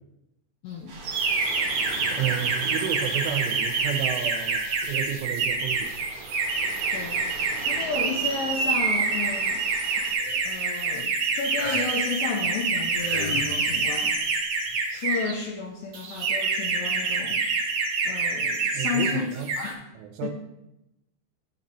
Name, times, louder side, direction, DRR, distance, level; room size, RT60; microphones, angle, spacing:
voice 1, 0.6-0.9 6.9-7.2 7.7-9.6 10.4-14.2 14.9-17.4 18.0-19.3 19.6-19.9 20.2-20.3, left 5 dB, 75° left, 0 dB, 2.7 m, -32 dB
sound 1, 0.9-10.1, right 3 dB, 40° right, 3.4 m, -42 dB
sound 2, 1.0-15.3 15.9-19.1 19.4-19.7, right 4 dB, 65° right, 1.8 m, -27 dB
voice 2, 2.2-4.6 4.9-6.0 18.7-19.5 20.0-20.3, right 10 dB, 85° right, 5 dB, 3.2 m, -31 dB
sound 3, 9.9-10.4 11.6-11.9 12.7-13.5 14.7-14.8, left 2 dB, 20° left, 1.0 m, -32 dB
13.0 x 8.9 x 2.9 m, 0.88 s
omnidirectional pair, 5.7 m